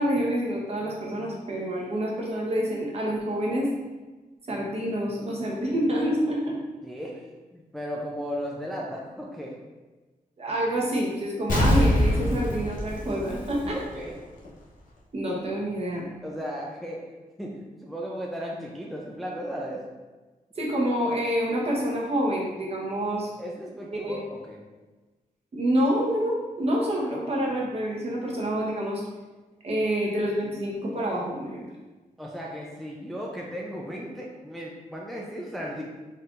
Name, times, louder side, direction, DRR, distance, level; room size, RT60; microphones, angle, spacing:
voice 1, 0.0-3.7 4.5-6.6 10.4-13.8 15.1-16.1 20.6-23.3 24.0-24.2 25.5-29.0 29.6-31.6, equal, 45° right, -3 dB, 1.1 m, -27 dB
voice 2, 6.8-9.6 13.6-14.2 16.2-19.9 23.4-24.6 32.2-35.8, equal, ahead, -2 dB, 0.4 m, -36 dB
Explosion, 11.5-14.1 14.4-14.5, equal, 70° left, 0.9 m, -24 dB
4.3 x 3.7 x 2.5 m, 1.2 s
wide cardioid pair, 120°, 14 cm